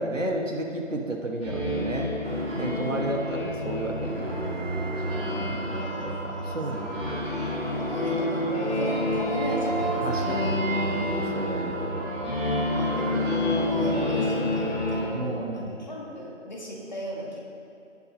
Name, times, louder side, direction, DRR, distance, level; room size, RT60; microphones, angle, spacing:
voice 1, 0.0-2.1 2.5-4.5 5.1-7.1 10.0-10.6 10.9-12.0 13.8-14.0 15.1-15.8, right 2 dB, 75° right, 1 dB, 1.5 m, -33 dB
sound 1, 1.4-15.0, left 1 dB, 10° right, 1.5 m, -29 dB
sound 2, 2.2-14.8, right 1 dB, 50° right, 1.2 m, -38 dB
voice 2, 2.6-3.2 5.7-6.6 6.9-7.0 7.8-10.8 12.7-17.4, equal, 35° left, -3 dB, 1.5 m, -36 dB
16.0 x 6.9 x 2.8 m, 2.7 s
figure-of-eight pair, 165°, 38 cm